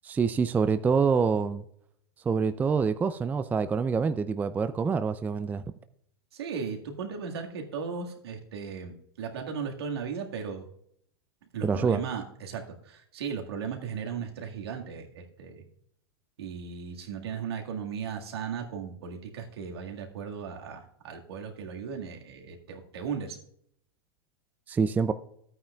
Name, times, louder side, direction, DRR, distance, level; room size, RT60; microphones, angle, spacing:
voice 1, 0.0-1.6 2.3-5.6 11.6-12.0 24.7-25.1, right 5 dB, 10° right, 0.4 m, -26 dB
voice 2, 6.3-10.6 11.5-15.6 16.4-23.4, right 6 dB, 75° right, 1.8 m, -36 dB
13.5 x 8.9 x 2.3 m
hypercardioid pair, 110°, 13 cm